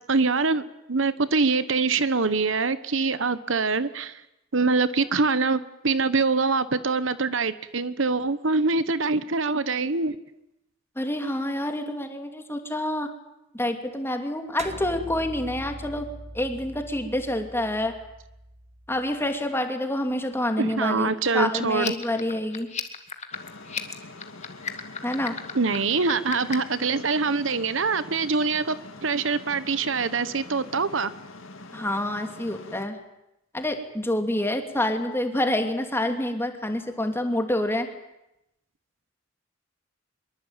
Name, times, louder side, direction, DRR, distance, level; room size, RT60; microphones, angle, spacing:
voice 1, 0.1-4.2 4.5-10.2 20.6-21.9 25.5-28.8 29.0-31.1, right 4 dB, 70° right, 15 dB, 1.1 m, -24 dB
voice 2, 11.0-13.1 13.5-16.1 16.3-17.9 18.9-21.1 21.3-22.7 25.0-25.3 31.7-33.0 33.5-37.9, left 1 dB, 10° left, 5 dB, 2.9 m, -27 dB
sound 1, 14.6-19.3, right 1 dB, 35° right, 1.8 m, -42 dB
sound 2, 21.7-26.7, left 6 dB, 35° left, 2.1 m, -35 dB
sound 3, 23.3-32.9, left 2 dB, 85° left, 2.3 m, -44 dB
24.5 x 23.0 x 9.0 m, 0.88 s
head